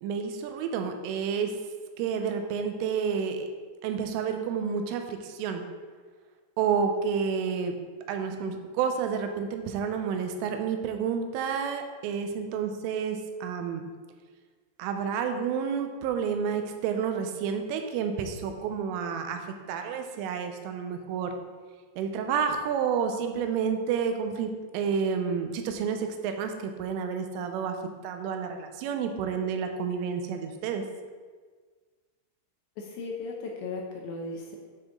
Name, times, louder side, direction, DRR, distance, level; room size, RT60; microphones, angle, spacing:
voice 1, 0.0-1.6 2.0-3.5 3.8-5.6 6.6-7.8 8.1-13.9 14.8-21.4 22.0-27.8 28.0-30.8, right 6 dB, 85° right, 6 dB, 3.2 m, -30 dB
voice 2, 32.8-34.6, left 3 dB, 80° left, 0 dB, 2.7 m, -36 dB
9.6 x 4.8 x 3.8 m, 1.5 s
omnidirectional pair, 5.6 m